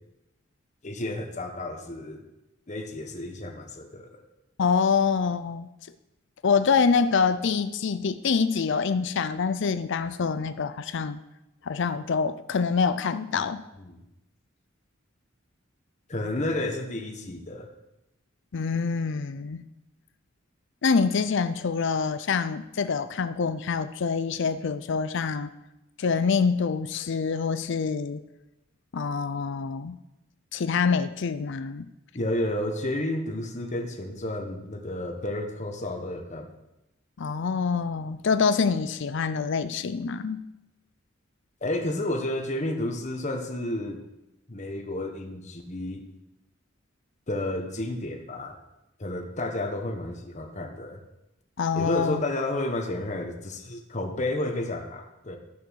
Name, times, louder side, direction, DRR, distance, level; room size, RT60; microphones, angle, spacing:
voice 1, 0.8-2.2 2.7-4.2 13.3-13.4 13.8-14.0 16.1-17.7 32.1-36.5 41.6-44.0 44.5-46.0 47.3-48.5 49.0-51.0 51.7-55.4, left 1 dB, 35° left, 3 dB, 1.2 m, -31 dB
voice 2, 4.6-5.7 6.4-11.2 11.6-13.6 18.5-19.7 20.8-25.5 26.0-28.2 28.9-30.0 30.5-31.9 37.2-40.4 51.6-52.2, left 5 dB, 65° left, 12 dB, 0.5 m, -26 dB
13.0 x 6.8 x 6.3 m, 0.94 s
head